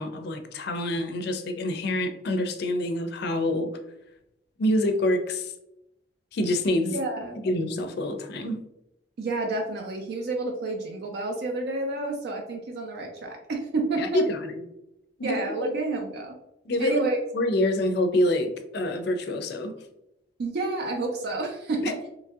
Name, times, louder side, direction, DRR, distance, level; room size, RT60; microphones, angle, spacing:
voice 1, 0.0-3.7 4.6-5.5 6.3-7.0 7.4-8.6 14.0-14.6 15.2-15.8 16.7-17.0 17.3-19.7 21.8-22.1, left 1 dB, 60° left, 7 dB, 0.4 m, -26 dB
voice 2, 6.9-7.4 9.2-14.2 15.2-16.4 16.8-17.2 20.4-22.0, right 2 dB, 60° right, 2 dB, 0.4 m, -30 dB
2.9 x 2.6 x 2.3 m, 0.84 s
head